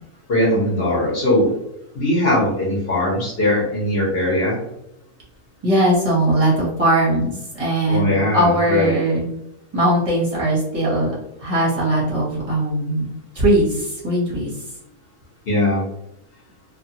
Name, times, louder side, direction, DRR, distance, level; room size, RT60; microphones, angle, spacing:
voice 1, 0.3-1.5 1.9-4.6 7.9-9.0 15.5-15.8, left 1 dB, 45° left, -5 dB, 1.1 m, -20 dB
voice 2, 5.6-9.3 9.7-11.1 11.4-13.1 13.3-14.5, right 1 dB, 30° right, -5 dB, 0.8 m, -19 dB
2.8 x 2.3 x 2.7 m, 0.78 s
omnidirectional pair, 1.6 m